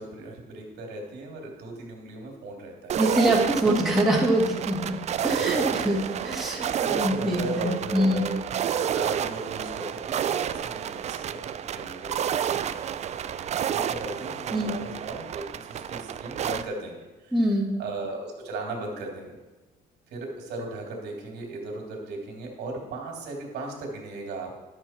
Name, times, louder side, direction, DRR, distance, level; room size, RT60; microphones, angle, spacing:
voice 1, 0.0-2.9 3.6-3.8 5.3-6.3 6.6-8.5 8.8-19.4 20.1-24.6, right 2 dB, 75° right, 1 dB, 2.7 m, -37 dB
sound 1, 2.9-16.6, right 9 dB, 40° right, 0.4 m, -30 dB
voice 2, 3.0-4.9 5.2-6.7 6.9-8.3 14.5-14.8 17.3-17.8, right 1 dB, ahead, -3 dB, 2.1 m, -24 dB
11.0 x 7.0 x 4.4 m, 1.2 s
cardioid pair, 110°, 17 cm